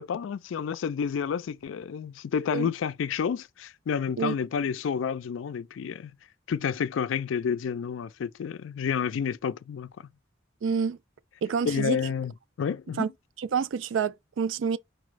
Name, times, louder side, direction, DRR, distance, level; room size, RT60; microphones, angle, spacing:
voice 1, 0.0-6.1 6.5-10.1 11.7-13.1, left 7 dB, 80° left, 0.3 m, -30 dB
voice 2, 10.6-11.0 11.4-12.0 13.0-13.1 13.4-14.8, right 6 dB, 85° right, 0.4 m, -28 dB
4.6 x 2.1 x 4.6 m
head